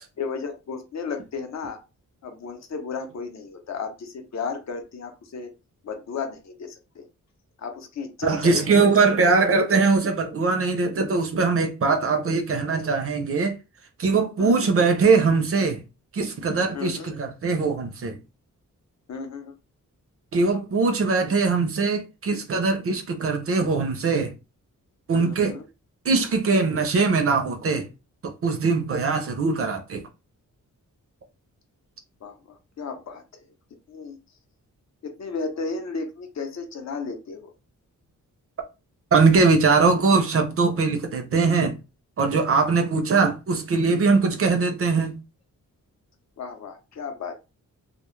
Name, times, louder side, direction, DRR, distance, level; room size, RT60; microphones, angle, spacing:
voice 1, 0.2-1.8 2.2-5.5 5.8-7.0 7.6-9.2 14.4-14.7 16.7-17.1 19.1-19.5 25.2-25.6 32.2-33.2 33.9-34.2 35.0-37.5 44.4-44.5 46.4-47.3, left 5 dB, 55° left, 0.6 m, -34 dB
voice 2, 8.3-13.5 14.0-15.8 16.1-18.2 20.3-24.3 25.1-25.5 26.1-27.8 28.2-30.0 39.1-41.8 42.2-45.1, right 4 dB, 45° right, 0.5 m, -21 dB
2.1 x 2.0 x 3.0 m
wide cardioid pair, 155°, 32 cm